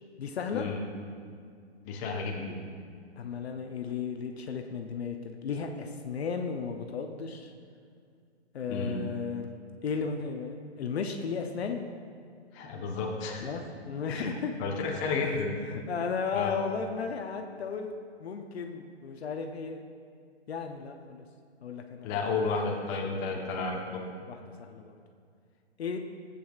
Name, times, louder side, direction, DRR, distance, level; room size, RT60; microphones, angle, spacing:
voice 1, 0.2-0.7 3.2-7.5 8.5-9.5 9.8-11.8 13.4-14.5 15.2-15.3 15.7-17.9 18.2-19.8 20.5-21.2 21.6-22.2 24.3-24.9 25.8-26.0, left 5 dB, 65° left, 4 dB, 0.8 m, -34 dB
voice 2, 1.8-2.6 8.7-8.9 12.5-13.5 14.1-14.3 14.6-15.6 16.3-16.6 22.0-24.0, left 4 dB, 20° left, -1 dB, 1.0 m, -32 dB
13.5 x 8.4 x 2.4 m, 2.2 s
hypercardioid pair, 140°, 34 cm